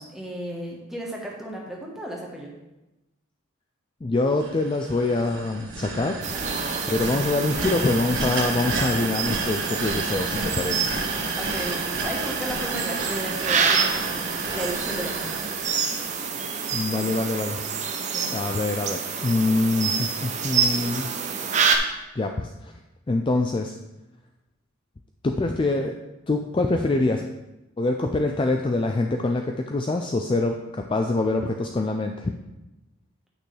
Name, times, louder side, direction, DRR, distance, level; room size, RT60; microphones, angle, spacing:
voice 1, 0.0-2.6 11.4-15.4 18.1-18.4, equal, ahead, -2 dB, 1.2 m, -34 dB
voice 2, 4.0-6.2 6.9-10.9 16.7-17.6 18.3-21.1 22.2-22.7 23.1-23.7 25.2-25.9 26.3-27.2 27.8-32.3, left 2 dB, 25° left, 4 dB, 0.3 m, -25 dB
sound 1, 4.4-16.5, right 3 dB, 60° right, 1.7 m, -31 dB
sound 2, 6.2-21.8, right 6 dB, 35° right, 0.6 m, -28 dB
9.0 x 6.1 x 3.3 m, 0.98 s
head